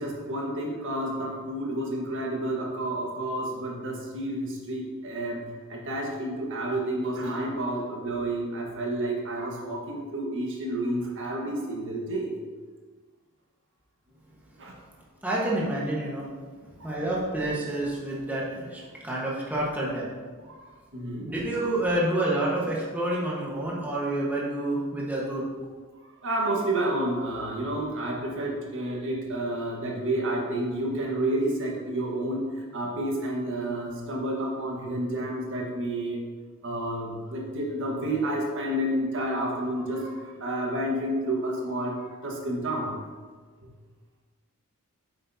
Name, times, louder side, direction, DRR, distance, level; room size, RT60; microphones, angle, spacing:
voice 1, 0.0-12.3 14.6-14.7 20.9-21.3 26.2-36.2 36.6-42.0 42.2-42.9, right 1 dB, 60° right, -2 dB, 1.5 m, -30 dB
voice 2, 15.2-16.3 16.8-20.0 21.2-25.4, right 1 dB, 5° right, -6 dB, 1.3 m, -28 dB
9.0 x 7.5 x 2.8 m, 1.5 s
head